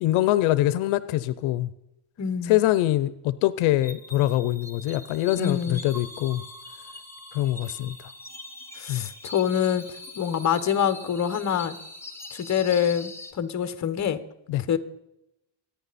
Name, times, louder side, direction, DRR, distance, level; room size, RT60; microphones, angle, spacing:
voice 1, 0.0-1.7 2.5-6.4 7.3-8.0 8.9-9.1 14.5-14.6, left 15 dB, 85° left, 0.7 m, -24 dB
voice 2, 2.2-2.6 5.4-5.8 8.8-9.8 10.2-11.8 12.3-14.2 14.7-14.8, left 8 dB, 35° left, 1.2 m, -25 dB
sound 1, 3.8-13.3, left 2 dB, 5° left, 1.5 m, -43 dB
24.5 x 9.7 x 4.2 m
cardioid pair, 125°, 47 cm